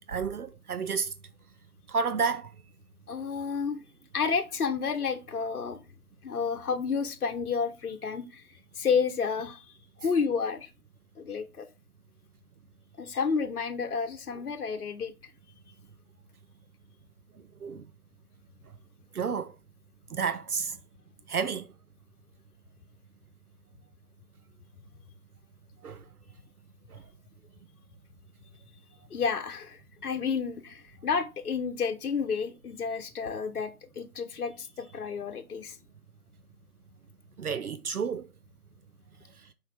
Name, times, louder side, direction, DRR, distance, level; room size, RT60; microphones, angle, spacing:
voice 1, 0.1-1.1 1.9-2.5 17.6-17.8 19.1-19.5 20.1-20.8 21.3-21.7 25.8-26.0 37.4-38.3, right 5 dB, 70° right, 0.7 m, -30 dB
voice 2, 3.1-3.8 4.1-5.8 6.2-10.7 11.2-11.7 13.0-15.1 29.1-35.8, left 5 dB, 70° left, 0.9 m, -31 dB
7.3 x 4.9 x 3.3 m
figure-of-eight pair, 155°, 46 cm